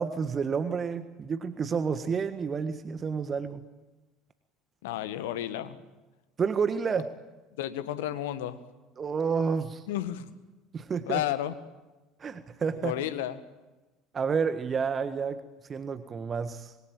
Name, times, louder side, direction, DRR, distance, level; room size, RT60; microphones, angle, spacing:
voice 1, 0.0-3.6 6.4-7.1 9.0-9.8 10.7-11.2 12.2-13.0 14.1-15.4 15.7-16.7, right 6 dB, 30° right, 11 dB, 1.5 m, -30 dB
voice 2, 4.8-5.8 7.6-8.6 9.9-10.3 11.1-11.5 12.8-13.4, left 12 dB, 65° left, 12 dB, 1.7 m, -32 dB
25.5 x 22.5 x 9.1 m, 1.1 s
figure-of-eight pair, 65°, 0 cm